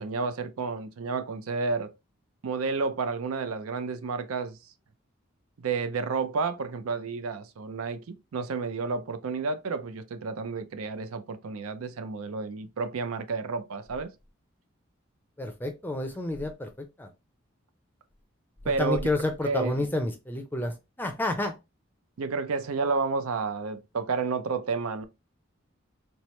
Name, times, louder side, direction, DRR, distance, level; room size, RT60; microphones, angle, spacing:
voice 1, 0.0-1.9 2.4-4.6 5.6-14.1 18.7-19.1 19.4-19.9 22.2-25.0, right 4 dB, 80° right, 0.4 m, -31 dB
voice 2, 15.4-17.1 18.6-21.5, left 2 dB, 10° left, 0.5 m, -30 dB
4.4 x 2.0 x 3.0 m
head